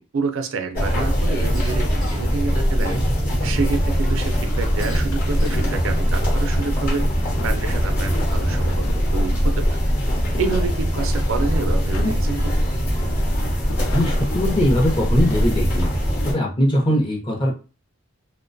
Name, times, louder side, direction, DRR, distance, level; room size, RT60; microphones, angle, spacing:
voice 1, 0.0-3.1 3.4-7.1 7.4-8.9 9.1-9.8 10.4-12.5, right 4 dB, 65° right, 7 dB, 0.4 m, -28 dB
sound 1, 0.7-16.3, equal, 45° left, 0.9 m, -21 dB
Cough, 1.5-2.4 2.8-3.4 4.8-5.8, left 2 dB, 90° left, 1.2 m, -39 dB
sound 2, 4.2-16.3, left 3 dB, 75° left, 0.4 m, -38 dB
voice 2, 13.9-15.9 16.2-17.6, equal, 25° left, -1 dB, 0.6 m, -21 dB
2.4 x 2.1 x 2.5 m, 0.33 s
head